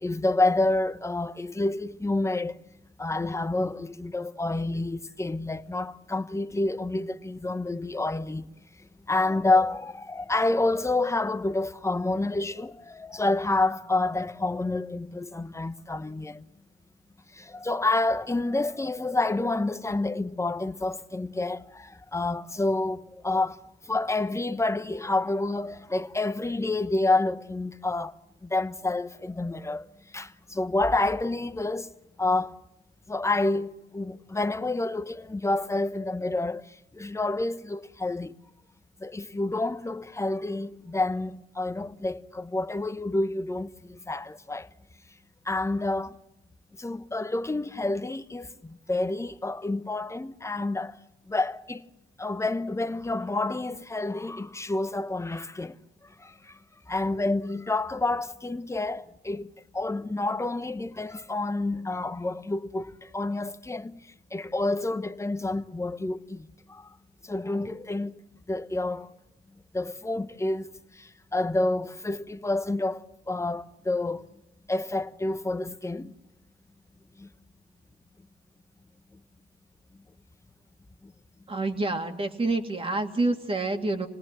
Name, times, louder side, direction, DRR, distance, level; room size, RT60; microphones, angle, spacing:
voice 1, 0.0-2.6 3.0-8.4 9.1-16.4 17.3-23.6 23.8-28.1 28.4-29.9 30.1-31.9 32.2-32.6 33.1-38.3 39.0-44.7 45.5-46.2 46.8-51.0 51.3-51.8 52.2-55.7 56.2-56.6 56.9-64.0 64.3-66.9 67.2-68.2 68.5-69.1 69.7-74.3 74.7-76.1 77.2-77.3 81.0-81.1, left 2 dB, 15° left, 1.0 m, -28 dB
voice 2, 81.5-84.1, right 2 dB, 25° right, 2.6 m, -27 dB
28.5 x 18.5 x 7.6 m
cardioid pair, 90°, 20 cm